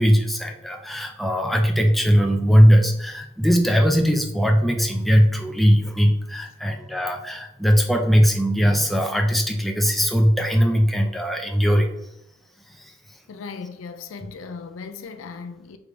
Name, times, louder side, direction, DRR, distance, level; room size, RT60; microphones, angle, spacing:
voice 1, 0.0-11.9 12.8-12.9, equal, ahead, 0.3 m, -19 dB
voice 2, 13.3-15.8, left 5 dB, 70° left, 0.4 m, -37 dB
3.7 x 3.5 x 3.2 m
head